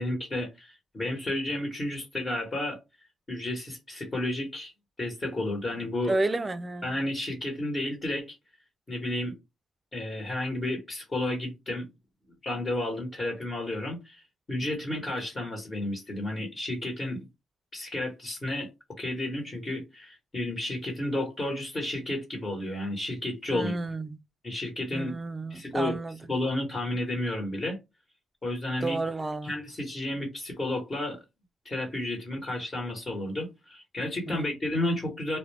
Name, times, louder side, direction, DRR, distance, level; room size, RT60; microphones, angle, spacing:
voice 1, 0.0-2.8 3.3-4.7 5.0-6.1 6.8-8.3 8.9-9.3 9.9-11.9 12.4-17.3 17.7-18.7 19.0-23.7 24.4-25.1 25.5-26.0 26.3-27.8 28.4-29.0 29.4-31.2 31.6-35.4, left 1 dB, 30° left, 1.1 m, -32 dB
voice 2, 6.1-6.9 23.5-24.2 24.9-26.2 28.8-29.6 34.3-34.5, right 2 dB, 25° right, 0.4 m, -31 dB
2.3 x 2.1 x 3.3 m
cardioid pair, 90°, 0 cm